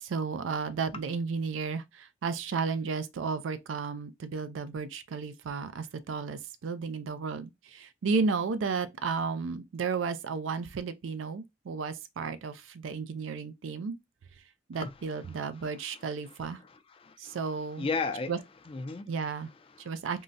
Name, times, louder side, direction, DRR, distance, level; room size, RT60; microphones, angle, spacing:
voice 1, 0.0-13.9 14.7-16.6 17.2-17.9 18.3-18.4 19.1-19.5 19.8-20.2, right 5 dB, 80° right, 0.4 m, -33 dB
voice 2, 15.2-18.3 18.7-19.3 19.7-19.9, left 4 dB, 30° left, 0.4 m, -37 dB
3.7 x 2.1 x 2.5 m
head